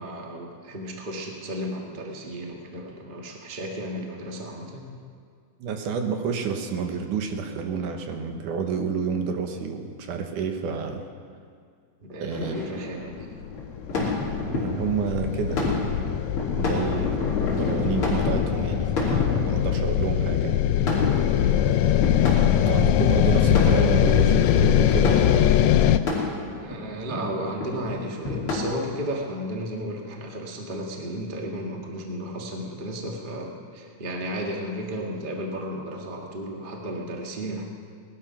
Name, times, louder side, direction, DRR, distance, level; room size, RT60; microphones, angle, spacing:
voice 1, 0.0-4.9 12.0-13.3 21.3-21.8 26.6-37.7, equal, 30° right, 0 dB, 0.9 m, -34 dB
voice 2, 5.6-11.0 12.2-12.8 14.5-16.1 16.6-17.2 17.7-20.6 21.8-22.0 22.7-25.6, right 6 dB, 75° right, 5 dB, 2.5 m, -29 dB
sound 1, 12.3-28.6, left 3 dB, 40° left, 3.4 m, -30 dB
sound 2, 13.4-26.0, left 11 dB, 80° left, 1.6 m, -22 dB
18.5 x 12.0 x 5.7 m, 2.1 s
omnidirectional pair, 3.8 m